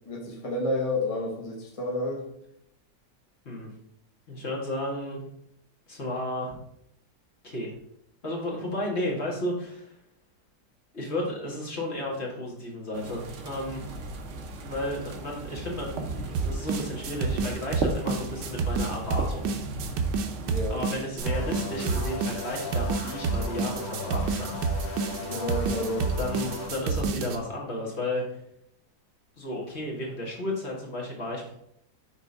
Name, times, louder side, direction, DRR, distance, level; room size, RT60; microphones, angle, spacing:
voice 1, 0.1-2.2 20.4-20.8 25.2-26.0, left 1 dB, 25° left, -1 dB, 0.9 m, -30 dB
voice 2, 4.3-5.2 5.9-6.6 7.4-7.8 8.2-10.0 10.9-13.9 14.6-19.5 20.7-24.6 26.2-28.4 29.4-31.5, left 1 dB, 40° left, -2 dB, 1.8 m, -33 dB
sound 1, 12.9-21.0, right 3 dB, 55° right, 1.0 m, -37 dB
sound 2, 16.3-27.4, right 4 dB, 85° right, 1.4 m, -29 dB
sound 3, 21.2-26.7, left 3 dB, 60° left, 1.7 m, -37 dB
5.9 x 3.5 x 5.3 m, 0.74 s
omnidirectional pair, 1.8 m